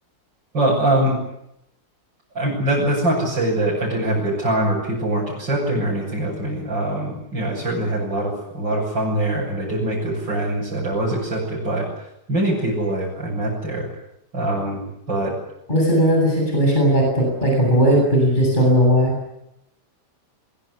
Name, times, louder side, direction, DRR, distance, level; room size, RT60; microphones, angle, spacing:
voice 1, 0.5-1.2 2.3-11.9 12.3-13.9 14.3-15.4, right 1 dB, 80° right, -6 dB, 8.2 m, -23 dB
voice 2, 15.7-19.1, equal, 25° left, 1 dB, 8.1 m, -17 dB
23.0 x 22.5 x 9.8 m, 0.83 s
omnidirectional pair, 2.0 m